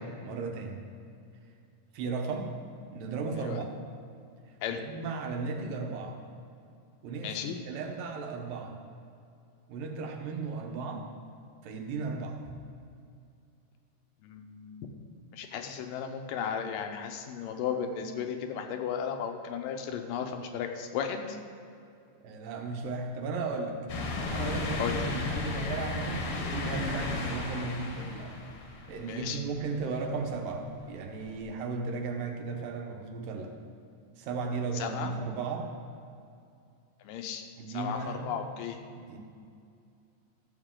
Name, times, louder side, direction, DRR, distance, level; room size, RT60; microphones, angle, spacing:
voice 1, 0.2-0.8 1.9-2.5 2.9-3.7 4.7-6.2 7.0-8.8 9.7-11.0 11.6-12.4 22.2-23.8 24.3-28.4 28.9-33.5 34.2-35.7 37.6-38.3 38.9-39.2, right 4 dB, 85° right, 3 dB, 2.6 m, -35 dB
voice 2, 7.2-7.6 14.2-14.8 15.3-21.4 24.8-25.1 29.1-29.4 34.7-35.1 37.0-37.5 37.7-38.8, left 7 dB, 85° left, 5 dB, 2.4 m, -35 dB
sound 1, 23.9-29.5 29.9-30.0 31.4-31.5, left 3 dB, 60° left, 1.6 m, -34 dB
13.0 x 7.3 x 3.7 m, 2.5 s
omnidirectional pair, 3.8 m